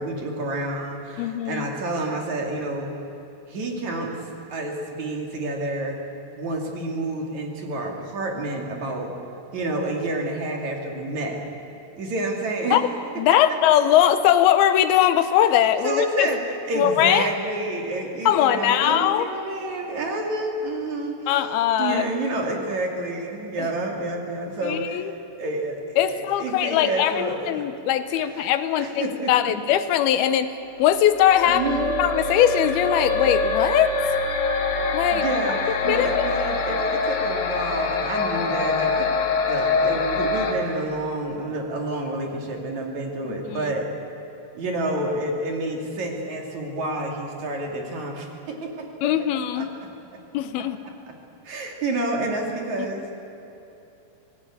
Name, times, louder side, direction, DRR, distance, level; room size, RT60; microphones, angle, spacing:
voice 1, 0.0-2.9 3.5-4.1 4.5-6.0 6.4-9.1 9.5-11.4 12.0-12.8 15.8-16.4 16.7-21.3 21.8-25.8 26.1-27.7 28.4-28.5 28.8-29.3 31.5-31.9 35.1-39.1 39.5-43.9 44.6-48.8 49.2-49.7 51.4-53.0, right 2 dB, 50° right, 1 dB, 3.7 m, -29 dB
voice 2, 1.2-1.7 12.7-12.8 13.2-16.3 16.8-17.3 18.3-19.3 21.3-22.1 23.6-23.7 24.6-25.1 26.0-30.5 30.8-31.6 32.0-33.9 34.9-35.3 35.9-36.3 43.2-43.7 49.0-49.7 50.3-50.8, left 11 dB, 90° left, 11 dB, 2.9 m, -21 dB
sound 1, 31.1-40.5, left 3 dB, 75° left, 3.8 m, -24 dB
25.5 x 18.5 x 8.6 m, 3.0 s
omnidirectional pair, 4.3 m